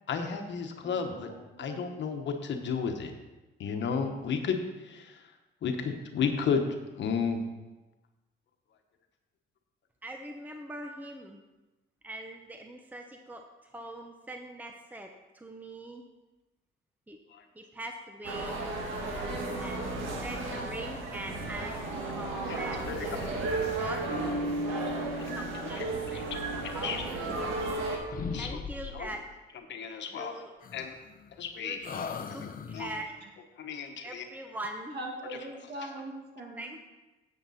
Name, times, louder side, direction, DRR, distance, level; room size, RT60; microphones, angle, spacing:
voice 1, 0.1-1.3 1.6-3.1 3.6-5.2 5.6-6.6 7.0-7.4 17.3-17.4 19.8-19.9 22.2-23.3 25.8-25.9 26.1-26.2 26.6-27.0 28.3-28.6 28.9-29.1 29.7-30.3 30.7-30.9 31.4-31.8 32.2-32.4 32.7-32.9 33.6-34.2, left 6 dB, 65° left, 5 dB, 1.3 m, -33 dB
voice 2, 0.8-2.0 32.7-32.8 34.9-36.7, right 1 dB, 55° right, 0 dB, 2.5 m, -42 dB
voice 3, 10.0-11.4 12.0-13.4 13.7-16.0 17.1-17.2 17.5-18.6 19.6-19.9 20.2-23.3 23.8-24.1 24.7-25.8 26.1-26.3 26.7-27.4 28.4-29.3 30.1-30.5 31.6-31.8 32.3-33.1 34.0-35.0 36.6-36.8, right 1 dB, 10° right, 4 dB, 0.9 m, -42 dB
sound 1, 18.2-28.0, right 2 dB, 80° right, 1.9 m, -33 dB
sound 2, 27.0-27.8 28.1-29.3 30.6-31.5 31.8-33.1, left 5 dB, 45° left, 0.9 m, -40 dB
10.5 x 8.0 x 4.3 m, 1.1 s
cardioid pair, 90°, 20 cm